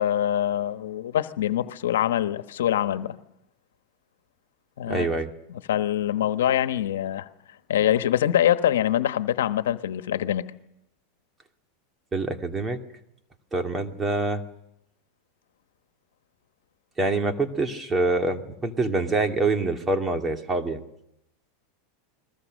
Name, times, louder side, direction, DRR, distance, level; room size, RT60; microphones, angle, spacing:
voice 1, 0.0-3.1 4.8-5.1 5.7-7.3 7.7-10.4, left 11 dB, 85° left, 1.2 m, -24 dB
voice 2, 4.9-5.3 12.1-12.8 13.5-14.4 17.0-20.8, right 3 dB, 20° right, 2.5 m, -25 dB
29.5 x 22.0 x 6.5 m
supercardioid pair, 120°, 0 cm